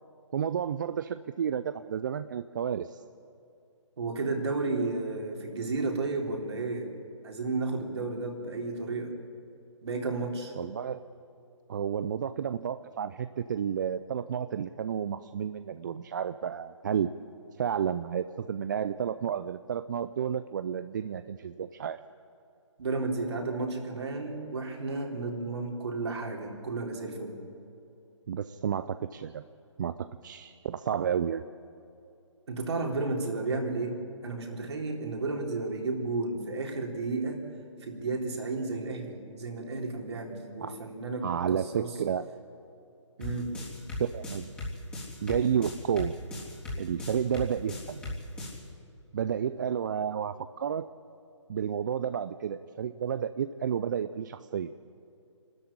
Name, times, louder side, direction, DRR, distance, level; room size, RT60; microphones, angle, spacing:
voice 1, 0.3-3.0 10.6-11.0 11.7-17.1 17.6-22.0 28.3-29.4 29.8-29.9 30.2-31.4 40.6-40.8 41.2-42.2 44.0-44.5 45.2-46.1 46.8-48.0 49.1-50.9 51.5-54.7, right 8 dB, 40° right, 12 dB, 0.5 m, -31 dB
voice 2, 4.0-6.9 7.2-9.1 9.8-10.5 22.8-27.4 32.5-34.0 34.2-37.4 37.8-41.9 43.2-43.5, right 3 dB, 60° right, 1 dB, 4.2 m, -32 dB
sound 1, 43.2-48.6, left 2 dB, 5° left, 3.7 m, -37 dB
27.0 x 13.5 x 8.7 m, 2.7 s
figure-of-eight pair, 150°, 16 cm